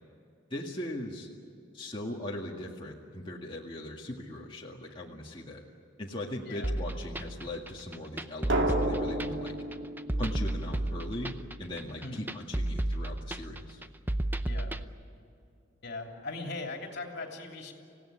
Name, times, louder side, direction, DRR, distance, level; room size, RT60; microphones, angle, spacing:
voice 1, 0.5-1.3 1.7-5.6 6.0-9.6 10.2-13.8, left 1 dB, 25° left, -3 dB, 1.9 m, -39 dB
sound 1, 6.6-14.8, right 1 dB, 10° right, 0.6 m, -33 dB
Drum, 8.5-11.2, right 1 dB, 70° right, 2.2 m, -32 dB
voice 2, 14.4-14.8 15.8-17.7, left 2 dB, 60° left, 2 dB, 3.0 m, -39 dB
27.0 x 17.0 x 10.0 m, 2.5 s
head